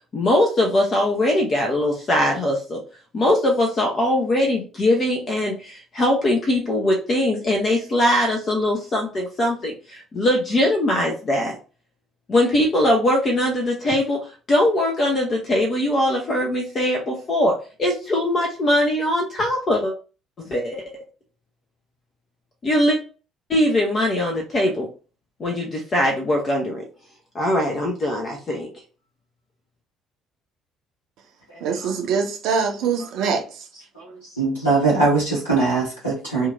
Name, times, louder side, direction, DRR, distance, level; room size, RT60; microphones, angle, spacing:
voice 1, 0.1-2.8 3.1-11.6 12.3-14.2 14.5-17.5 17.8-19.9 20.4-20.8 22.6-23.0 23.5-24.9 25.4-26.8 27.3-28.7, left 1 dB, 40° left, 0.7 m, -21 dB
voice 2, 31.6-33.7, right 5 dB, 55° right, 0.6 m, -24 dB
voice 3, 33.9-36.5, right 3 dB, 80° left, 0.9 m, -21 dB
2.8 x 2.4 x 2.5 m
figure-of-eight pair, 50°, 0 cm